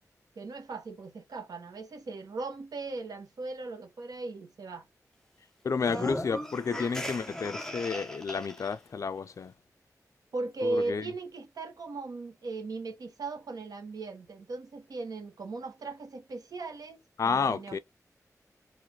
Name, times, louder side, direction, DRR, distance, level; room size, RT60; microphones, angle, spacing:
voice 1, 0.4-4.9 5.9-6.2 10.3-17.8, right 3 dB, 85° right, 1.0 m, -37 dB
voice 2, 5.6-9.5 10.6-11.1 17.2-17.8, left 5 dB, 55° left, 0.4 m, -31 dB
sound 1, 5.7-8.7, equal, 10° left, 0.7 m, -37 dB
3.1 x 2.5 x 3.6 m
wide cardioid pair, 125°, 6 cm